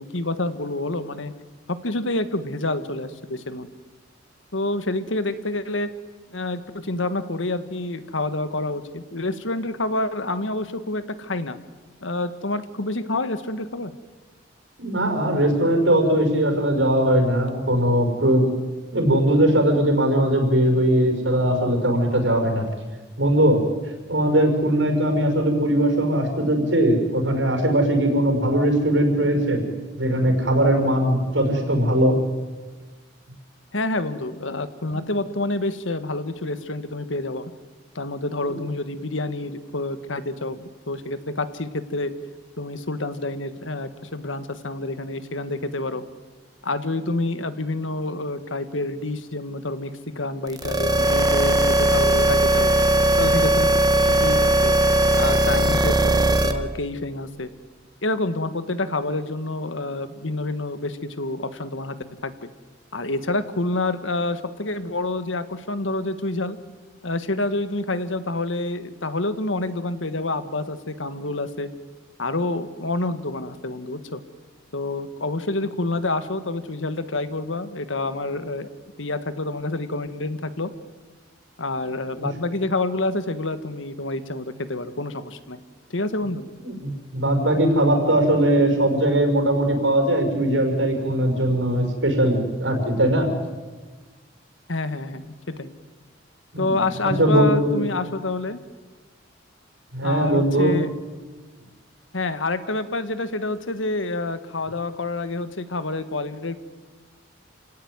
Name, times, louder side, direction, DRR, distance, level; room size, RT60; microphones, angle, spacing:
voice 1, 0.0-1.3 1.7-3.7 4.5-5.9 6.3-11.6 12.0-13.9 33.7-37.5 38.0-42.1 42.6-46.0 46.6-52.7 53.2-53.7 54.1-54.7 55.1-57.5 58.0-62.0 62.2-62.5 62.9-66.6 67.0-71.7 72.2-74.2 74.7-78.7 79.0-80.7 81.6-85.6 85.9-86.5 94.7-95.7 96.6-98.6 100.0-100.9 102.1-106.6, left 2 dB, 85° left, 11 dB, 1.7 m, -28 dB
voice 2, 14.8-18.5 18.9-22.7 23.2-23.6 24.1-29.6 30.0-32.2 34.9-35.0 38.4-38.5 82.2-82.3 86.6-93.3 96.5-97.8 99.9-100.8, right 1 dB, 75° right, 4 dB, 5.9 m, -20 dB
sound 1, 50.5-56.5, right 1 dB, 20° right, 1.6 m, -19 dB
28.5 x 17.0 x 9.6 m, 1.3 s
head